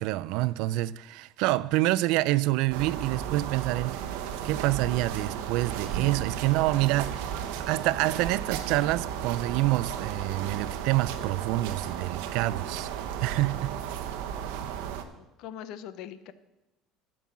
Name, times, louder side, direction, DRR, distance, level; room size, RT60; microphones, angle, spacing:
voice 1, 0.0-4.2 4.4-12.9 13.2-13.8, right 17 dB, 70° right, 0.3 m, -27 dB
sound 1, 2.7-15.0, right 9 dB, 85° right, 0.9 m, -34 dB
voice 2, 15.1-16.3, left 10 dB, 60° left, 0.7 m, -42 dB
11.5 x 5.5 x 7.4 m
cardioid pair, 155°, 0 cm